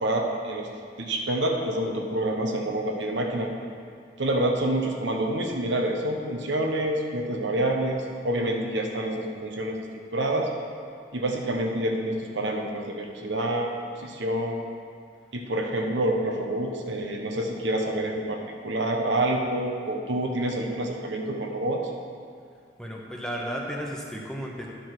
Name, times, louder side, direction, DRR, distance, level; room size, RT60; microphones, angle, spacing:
voice 1, 0.0-0.7 1.0-3.5 4.2-9.8 10.1-10.5 11.1-13.7 14.0-14.6 15.3-18.4 18.6-21.8, right 1 dB, 85° right, 1 dB, 1.1 m, -27 dB
voice 2, 22.8-24.7, equal, 5° left, -2 dB, 0.9 m, -33 dB
11.5 x 5.1 x 6.0 m, 2.2 s
head